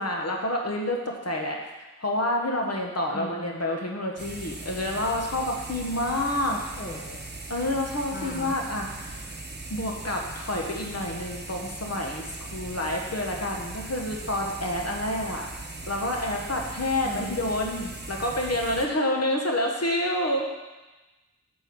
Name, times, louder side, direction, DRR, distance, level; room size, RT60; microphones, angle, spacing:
voice 1, 0.0-6.5 7.5-9.2 9.7-15.5 15.9-20.5, left 1 dB, 55° left, 0 dB, 1.4 m, -28 dB
sound 1, 4.2-18.9, right 2 dB, 35° right, 1.0 m, -39 dB
voice 2, 6.5-7.2 8.1-8.5 17.0-17.4, left 1 dB, 35° left, 0 dB, 1.2 m, -37 dB
8.1 x 4.6 x 7.1 m, 1.1 s
cardioid pair, 45°, 31 cm